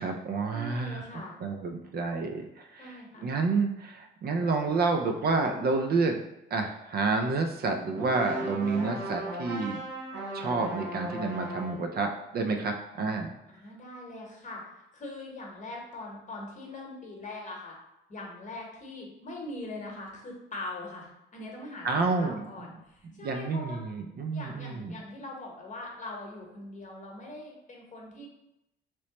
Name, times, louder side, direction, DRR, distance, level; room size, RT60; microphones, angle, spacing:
voice 1, 0.0-6.2 6.5-9.8 10.3-13.3 21.8-22.7 23.2-25.0, right 3 dB, 50° right, 4 dB, 0.4 m, -29 dB
voice 2, 0.5-1.4 2.8-3.3 13.5-14.7 14.9-17.8 18.1-23.8 24.3-28.3, left 2 dB, 40° left, -1 dB, 1.0 m, -42 dB
sound 1, 7.9-11.9, right 1 dB, 80° right, 1.0 m, -36 dB
3.1 x 3.0 x 2.9 m, 0.88 s
cardioid pair, 90°, 20 cm